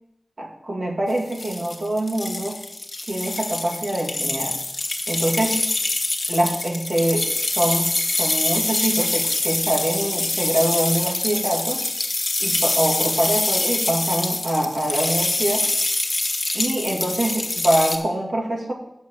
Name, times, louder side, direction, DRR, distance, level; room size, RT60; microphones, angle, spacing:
voice 1, 0.4-2.6 3.1-4.5 5.1-5.6 6.3-7.9 8.2-11.8 12.4-15.7 16.5-18.7, right 1 dB, 60° right, -1 dB, 2.3 m, -24 dB
sound 1, 1.2-18.0, left 2 dB, 30° left, 1.3 m, -25 dB
7.9 x 6.0 x 7.5 m, 0.80 s
wide cardioid pair, 90°, 0 cm